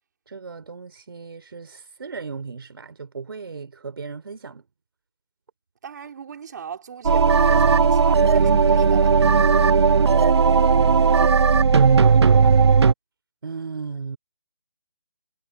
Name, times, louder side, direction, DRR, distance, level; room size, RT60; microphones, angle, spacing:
voice 1, 0.3-4.6 11.7-12.6 13.4-14.2, right 5 dB, 60° right, 3.2 m, -36 dB
voice 2, 5.8-9.2, right 7 dB, 45° right, 4.0 m, -38 dB
sound 1, 7.0-12.9, right 5 dB, 85° right, 0.5 m, -16 dB
figure-of-eight pair, 160°, 14 cm